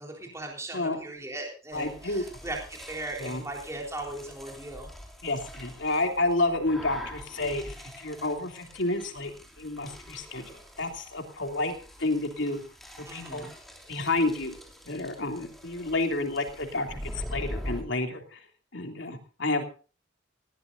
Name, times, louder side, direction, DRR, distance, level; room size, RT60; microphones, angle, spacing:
voice 1, 0.0-4.9 13.1-13.5, right 2 dB, 15° right, 0 dB, 3.8 m, -38 dB
voice 2, 1.7-2.2 3.2-3.4 5.2-11.7 12.0-12.6 13.1-13.5 13.9-14.6 14.9-18.4 18.7-19.6, left 2 dB, 75° left, 4 dB, 3.0 m, -30 dB
sound 1, 1.7-17.8, equal, ahead, 3.0 m, -44 dB
20.0 x 16.5 x 2.7 m, 0.37 s
head